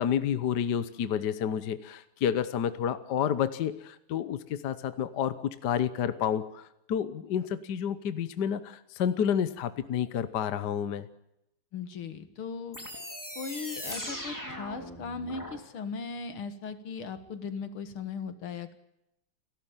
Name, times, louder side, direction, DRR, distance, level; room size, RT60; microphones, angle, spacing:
voice 1, 0.0-11.1, left 8 dB, 60° left, 13 dB, 1.4 m, -30 dB
voice 2, 11.7-12.8 13.4-18.7, left 5 dB, 80° left, 10 dB, 2.5 m, -38 dB
sound 1, 12.7-15.6, equal, 10° left, 3.3 m, -39 dB
29.0 x 12.5 x 9.0 m, 0.84 s
omnidirectional pair, 2.3 m